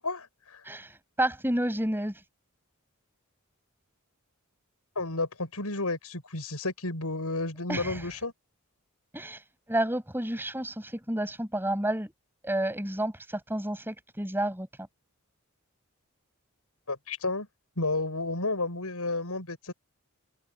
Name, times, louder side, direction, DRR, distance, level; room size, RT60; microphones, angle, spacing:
voice 1, 0.0-0.6 5.0-8.3 16.9-17.5 17.8-19.7, left 2 dB, 85° left, 5.8 m, -32 dB
voice 2, 0.6-2.2 7.7-8.1 9.1-12.1 12.4-14.7, right 1 dB, 10° right, 7.6 m, -30 dB
head